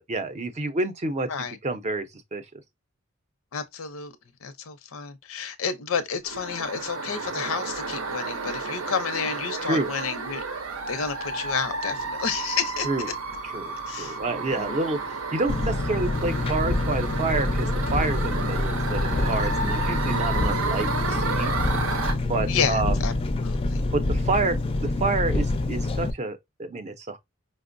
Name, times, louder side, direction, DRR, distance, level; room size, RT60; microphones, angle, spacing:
voice 1, 0.0-2.6 9.6-9.9 12.8-13.1 13.5-21.5 22.3-23.0 23.9-24.6 24.8-27.2, right 3 dB, 35° right, 0.5 m, -29 dB
voice 2, 3.5-4.1 4.4-10.4 10.9-13.1 13.9-14.2 14.6-14.8 22.5-23.1 23.4-23.8, left 6 dB, 85° left, 0.6 m, -30 dB
sound 1, 6.2-22.1, right 3 dB, 80° right, 0.7 m, -31 dB
Engine, 15.5-26.1, left 2 dB, 25° left, 0.4 m, -26 dB
5.1 x 2.0 x 2.5 m
head